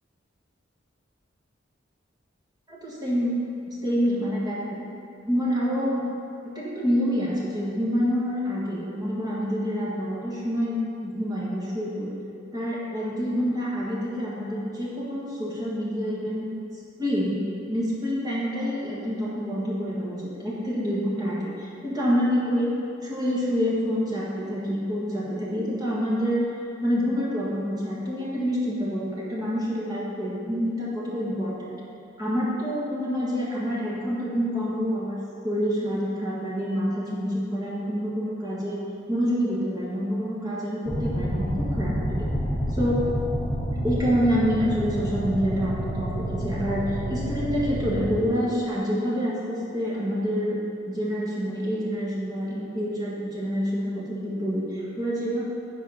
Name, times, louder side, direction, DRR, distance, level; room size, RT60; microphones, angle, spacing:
voice 1, 2.7-3.4 3.7-4.9 5.2-6.0 6.5-12.2 12.5-16.5 17.0-17.4 17.7-22.7 23.0-26.5 26.8-31.7 32.2-35.2 35.4-38.8 39.1-42.3 42.7-43.0 43.8-50.6 50.9-55.4, equal, 20° right, -7 dB, 1.5 m, -27 dB
sound 1, 40.9-48.1, equal, 10° left, 1.3 m, -29 dB
8.6 x 5.1 x 5.6 m, 2.5 s
head